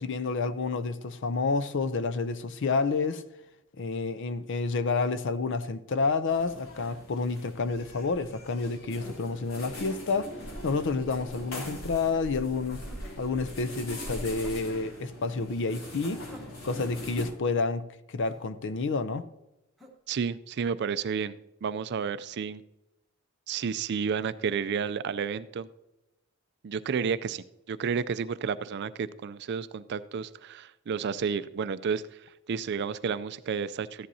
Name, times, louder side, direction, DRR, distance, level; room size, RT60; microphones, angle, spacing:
voice 1, 0.0-3.2 3.8-10.3 10.6-12.8 13.2-16.2 16.6-19.3, left 4 dB, 60° left, 0.6 m, -29 dB
sound 1, 6.3-17.3, left 1 dB, 90° left, 3.0 m, -41 dB
sound 2, 10.9-11.2 12.9-13.1 14.4-14.7 16.3-16.9 18.3-18.5 19.8-20.0, equal, ahead, 1.1 m, -50 dB
voice 2, 20.1-21.3 21.6-22.6 23.5-25.7 26.6-34.1, right 6 dB, 50° right, 0.4 m, -31 dB
14.0 x 10.5 x 2.7 m
head